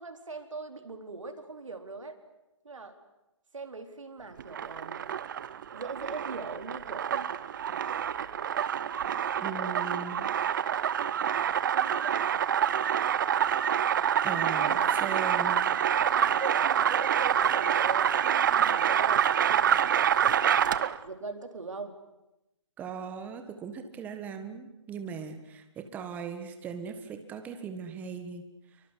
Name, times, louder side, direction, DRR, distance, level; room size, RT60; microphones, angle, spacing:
voice 1, 0.0-2.2 2.6-3.0 3.5-5.0 5.7-7.3 11.1-11.4 11.7-12.3 14.5-14.9 16.0-21.9, right 4 dB, 75° right, 6 dB, 4.4 m, -40 dB
sound 1, 4.4-21.0, right 9 dB, 40° right, 0.9 m, -27 dB
voice 2, 9.4-10.2 14.2-15.6 22.8-28.5, right 6 dB, 10° right, 7 dB, 1.6 m, -39 dB
28.0 x 24.0 x 8.4 m, 0.93 s
hypercardioid pair, 155°, 16 cm